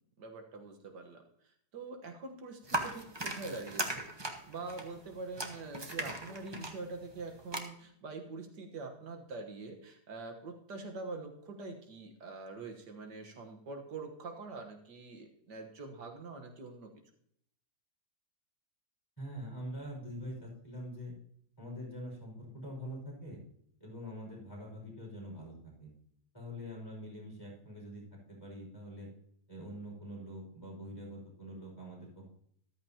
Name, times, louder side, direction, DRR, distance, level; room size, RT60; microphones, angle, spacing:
voice 1, 0.2-4.1 4.5-16.9, right 3 dB, 85° right, 4 dB, 2.0 m, -44 dB
sound 1, 2.7-7.6, right 2 dB, 20° right, 0.9 m, -38 dB
voice 2, 19.2-21.1 21.6-23.4 23.8-25.9 26.3-28.0 28.3-29.1 29.5-32.3, equal, 15° left, -3 dB, 5.7 m, -44 dB
14.0 x 13.0 x 2.9 m, 0.70 s
omnidirectional pair, 1.8 m